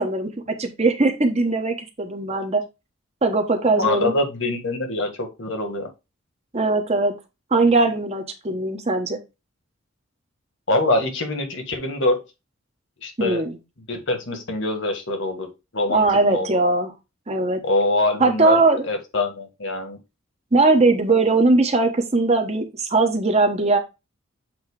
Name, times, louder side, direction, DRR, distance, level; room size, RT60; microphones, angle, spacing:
voice 1, 0.0-2.6 3.2-4.1 6.5-7.1 7.5-9.2 13.2-13.6 15.9-16.9 17.3-17.6 18.2-18.9 20.5-23.8, right 3 dB, 30° right, 5 dB, 1.1 m, -20 dB
voice 2, 3.8-5.9 10.7-12.2 13.0-13.4 13.9-15.5 15.7-16.6 17.6-18.6 18.9-20.0, left 2 dB, 65° left, 5 dB, 1.7 m, -24 dB
7.9 x 3.0 x 4.8 m, 0.25 s
head